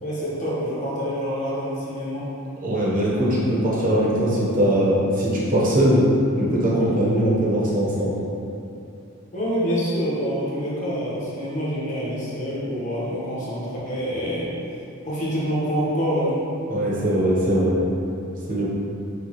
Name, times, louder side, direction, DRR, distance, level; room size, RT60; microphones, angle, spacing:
voice 1, 0.0-2.3 9.3-14.5 15.0-16.4, equal, 35° left, -8 dB, 1.1 m, -26 dB
voice 2, 2.6-6.0 6.4-8.1 16.7-17.8 18.5-18.7, right 1 dB, 40° right, -6 dB, 0.9 m, -21 dB
6.3 x 2.3 x 3.0 m, 2.6 s
head